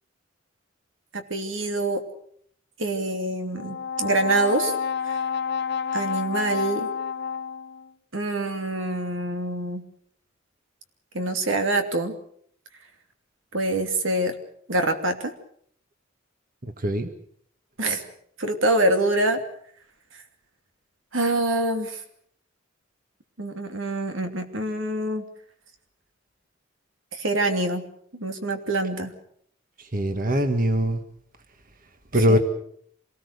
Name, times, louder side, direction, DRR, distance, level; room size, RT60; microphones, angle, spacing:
voice 1, 1.1-2.0 2.8-4.7 5.0-5.2 5.9-6.9 8.1-9.8 11.1-12.1 13.5-14.3 14.7-15.3 17.8-18.0 18.4-19.4 21.1-22.0 23.4-25.2 27.1-27.8 28.1-29.1 32.3-32.4, right 2 dB, 90° right, 6 dB, 2.8 m, -25 dB
Brass instrument, 3.5-7.9, left 6 dB, 60° left, 0.9 m, -29 dB
voice 2, 16.6-17.1 29.8-31.0 32.1-32.4, equal, 45° right, 7 dB, 1.7 m, -22 dB
26.5 x 19.0 x 6.7 m, 0.65 s
head